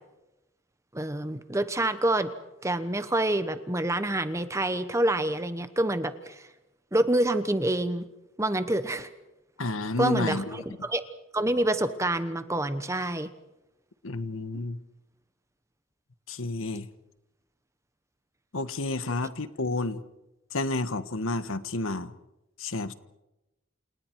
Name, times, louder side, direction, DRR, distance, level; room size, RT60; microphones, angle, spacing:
voice 1, 0.9-2.3 2.6-6.5 6.9-8.1 8.4-9.1 10.0-11.0 11.3-13.3 14.5-14.6, right 1 dB, 15° right, 1.0 m, -27 dB
voice 2, 9.6-10.6 14.0-14.8 16.3-16.9 18.5-20.0 20.5-22.1 22.6-22.9, left 2 dB, 75° left, 1.4 m, -30 dB
29.0 x 28.5 x 4.7 m
head